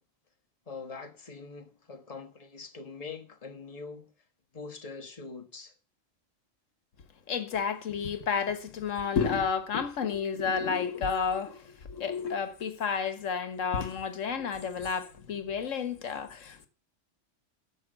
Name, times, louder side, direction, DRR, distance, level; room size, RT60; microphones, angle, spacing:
voice 1, 0.7-4.1 4.5-5.7, left 4 dB, 30° left, 1.4 m, -43 dB
voice 2, 7.3-16.7, left 6 dB, 90° left, 1.5 m, -31 dB
11.0 x 6.8 x 7.6 m
omnidirectional pair, 1.3 m